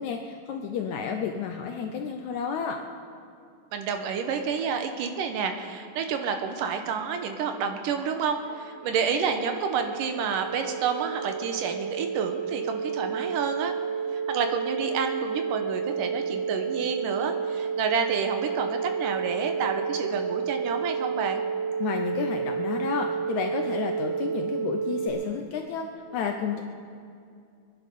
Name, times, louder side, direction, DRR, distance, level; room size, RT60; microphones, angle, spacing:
voice 1, 0.0-2.8 21.8-26.6, left 6 dB, 75° left, 3 dB, 1.8 m, -31 dB
voice 2, 3.7-13.7 14.1-21.4, right 6 dB, 75° right, 6 dB, 2.4 m, -29 dB
sound 1, 8.1-25.1, right 6 dB, 20° right, 3.7 m, -31 dB
24.0 x 10.5 x 5.4 m, 2.4 s
omnidirectional pair, 4.1 m